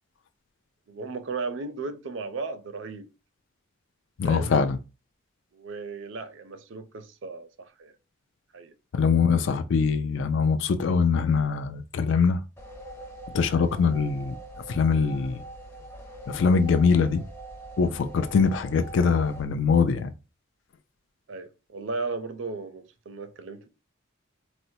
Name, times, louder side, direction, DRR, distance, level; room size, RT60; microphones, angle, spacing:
voice 1, 0.9-3.1 4.2-4.5 5.5-7.9 8.5-8.7 21.3-23.7, right 4 dB, 65° right, 0.4 m, -35 dB
voice 2, 4.2-4.8 8.9-12.4 13.3-14.3 14.7-15.4 16.3-17.2 17.8-20.1, left 5 dB, 65° left, 0.4 m, -23 dB
sound 1, 12.6-19.4, right 2 dB, 10° left, 0.6 m, -43 dB
4.3 x 2.0 x 2.7 m
head